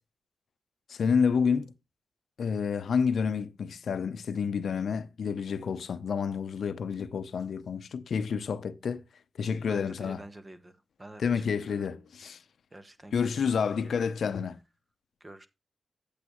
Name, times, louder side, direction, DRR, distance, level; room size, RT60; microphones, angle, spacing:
voice 1, 0.9-1.7 2.4-9.0 9.4-10.2 11.2-12.4 13.1-14.6, left 6 dB, 80° left, 0.7 m, -29 dB
voice 2, 9.7-11.9 12.7-14.1 15.2-15.5, right 1 dB, 25° right, 1.3 m, -48 dB
8.4 x 8.3 x 3.0 m
cardioid pair, 60°, 0 cm